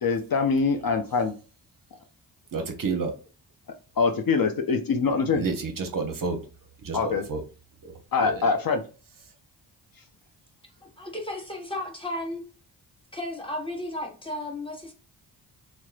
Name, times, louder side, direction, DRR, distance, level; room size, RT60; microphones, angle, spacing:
voice 1, 0.0-1.3 4.0-5.4 6.9-7.2 8.1-8.8, left 4 dB, 45° left, 0.6 m, -24 dB
voice 2, 2.5-3.1 5.3-6.4 6.8-7.4 8.2-8.4, right 4 dB, 45° right, 0.7 m, -29 dB
voice 3, 10.8-12.4 13.1-14.9, left 1 dB, 10° left, 0.9 m, -34 dB
2.9 x 2.1 x 2.3 m
supercardioid pair, 45°, 48 cm